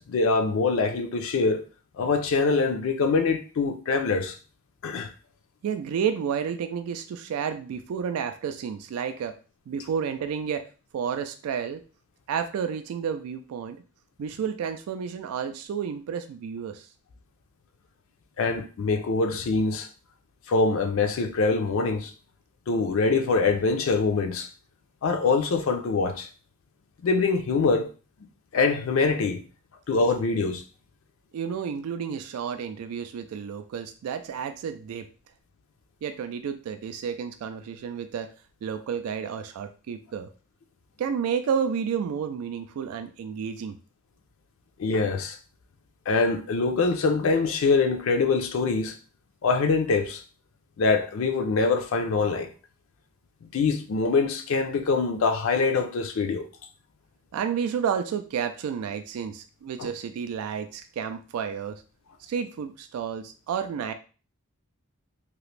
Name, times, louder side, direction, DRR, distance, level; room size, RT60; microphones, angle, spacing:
voice 1, 0.0-1.6 2.0-4.4 4.8-5.1 18.4-19.9 20.5-22.1 22.7-24.5 25.0-26.3 27.0-27.9 28.5-29.4 29.9-30.6 44.8-45.4 46.1-48.9 49.4-50.2 50.8-52.5 53.4-56.5 59.8-59.9, left 4 dB, 65° left, 0.4 m, -24 dB
voice 2, 5.6-9.4 9.7-10.7 10.9-11.8 12.3-13.8 14.2-16.9 31.3-35.1 36.0-38.3 38.6-40.3 41.0-43.8 57.3-61.8 62.2-63.9, right 7 dB, 90° right, 0.3 m, -31 dB
2.9 x 2.5 x 3.2 m
head